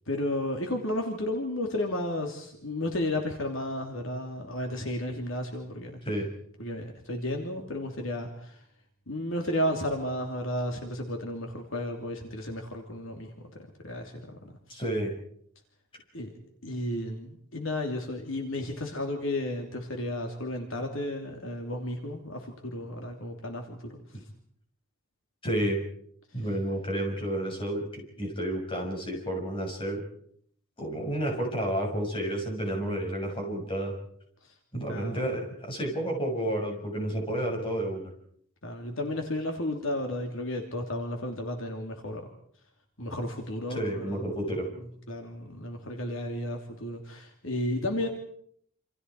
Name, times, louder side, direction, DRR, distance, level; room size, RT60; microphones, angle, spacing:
voice 1, 0.1-6.0 6.6-8.6 9.1-14.8 16.1-16.3 16.6-24.2 26.3-26.4 34.4-34.5 34.9-35.2 38.6-42.3 43.0-44.4 45.1-48.1, left 1 dB, 65° left, 3 dB, 3.1 m, -33 dB
voice 2, 14.7-15.1 25.4-25.8 26.3-30.0 30.8-33.9 34.7-38.1 43.7-44.7, right 1 dB, 25° left, 1 dB, 6.8 m, -31 dB
28.5 x 27.5 x 4.8 m, 0.65 s
head